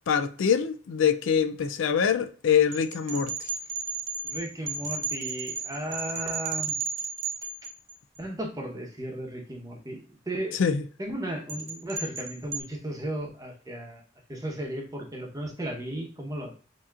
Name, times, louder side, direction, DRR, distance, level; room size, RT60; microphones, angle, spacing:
voice 1, 0.1-3.5 10.6-10.8, left 7 dB, 90° left, 0.4 m, -24 dB
sound 1, 2.7-8.2 11.5-12.6, right 4 dB, 80° right, 0.9 m, -33 dB
voice 2, 4.2-6.8 8.2-10.6 11.0-14.0 14.3-16.5, right 1 dB, 20° right, 0.9 m, -35 dB
6.9 x 2.8 x 2.4 m
head